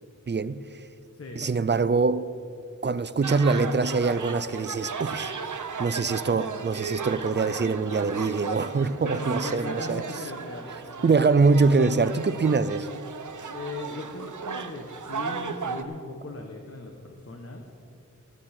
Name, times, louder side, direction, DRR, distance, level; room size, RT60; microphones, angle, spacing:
voice 1, 0.3-0.6 1.4-2.3 2.8-5.3 5.8-10.0 11.0-12.9, right 4 dB, 35° right, 0.5 m, -24 dB
sound 1, 3.2-15.8, right 5 dB, 70° right, 0.9 m, -35 dB
voice 2, 9.0-11.2 13.5-17.6, left 2 dB, 45° left, 1.2 m, -38 dB
15.0 x 13.0 x 4.4 m
wide cardioid pair, 80°, 32 cm